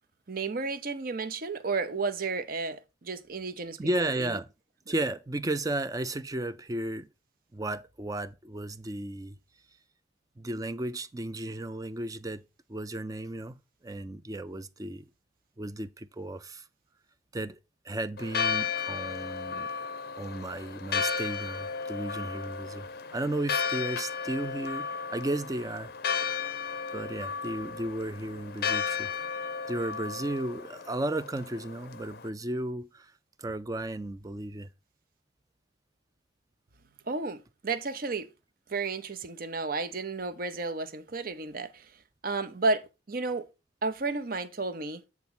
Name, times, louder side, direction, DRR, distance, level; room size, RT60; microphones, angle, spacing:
voice 1, 0.3-4.4 37.1-38.3 38.7-41.9 42.2-43.5 43.8-45.0, right 3 dB, 50° right, 0.7 m, -32 dB
voice 2, 3.8-4.5 4.9-7.1 7.5-9.4 10.4-12.4 12.7-15.1 15.6-16.7 17.3-17.6 17.8-19.7 20.2-22.9 23.1-25.9 26.9-29.1 29.7-33.1 33.4-34.7, right 1 dB, 20° right, 0.4 m, -34 dB
Church bell, 18.2-32.3, left 6 dB, 55° left, 0.5 m, -34 dB
8.3 x 3.5 x 5.9 m
head